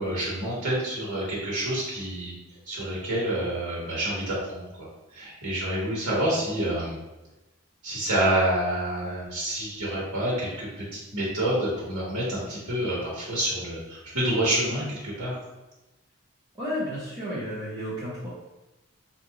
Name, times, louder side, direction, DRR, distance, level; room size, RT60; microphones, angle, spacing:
voice 1, 0.0-2.3 2.7-4.9 5.1-6.9 7.8-15.3, right 1 dB, 85° right, -6 dB, 1.3 m, -28 dB
voice 2, 16.5-18.3, equal, 15° right, -11 dB, 0.8 m, -32 dB
3.1 x 2.5 x 3.8 m, 1.0 s
head